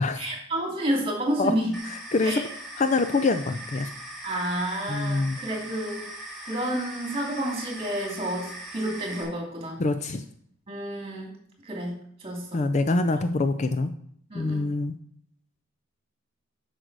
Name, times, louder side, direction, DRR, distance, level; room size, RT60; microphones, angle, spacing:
voice 1, 0.1-1.7 2.2-2.4 4.2-6.0 6.4-9.8 10.7-11.3 11.6-12.7 14.3-14.7, right 1 dB, 25° right, 0 dB, 2.6 m, -30 dB
sound 1, 1.7-9.2, right 1 dB, ahead, 2.7 m, -40 dB
voice 2, 1.8-2.4 2.8-3.9 4.9-5.4 9.8-10.2 12.5-13.9 14.3-14.9, left 3 dB, 35° left, 9 dB, 0.4 m, -25 dB
7.9 x 6.5 x 4.7 m, 0.66 s
head